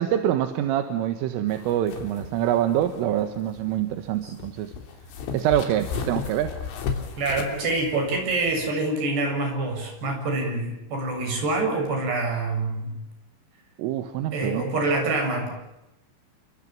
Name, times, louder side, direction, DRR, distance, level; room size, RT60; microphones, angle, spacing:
voice 1, 0.0-4.7 5.3-6.6 13.8-14.6, right 11 dB, 80° right, 8 dB, 4.0 m, -25 dB
sound 1, 1.5-8.7, left 6 dB, 70° left, 5.5 m, -35 dB
voice 2, 7.2-13.0 14.3-15.5, right 2 dB, 55° right, 4 dB, 9.4 m, -26 dB
29.5 x 25.0 x 7.3 m, 0.91 s
omnidirectional pair, 5.9 m